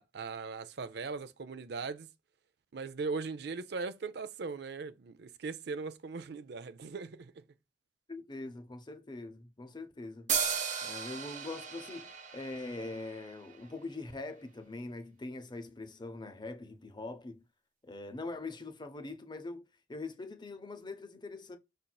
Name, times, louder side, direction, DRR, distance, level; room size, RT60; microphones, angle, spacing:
voice 1, 0.0-2.1 2.7-7.4, right 4 dB, 65° right, 0.5 m, -39 dB
voice 2, 8.1-10.3 10.8-17.4 17.8-21.6, left 2 dB, 25° left, 0.7 m, -43 dB
sound 1, 10.3-13.8, right 7 dB, 45° right, 0.9 m, -36 dB
5.2 x 4.4 x 2.3 m
head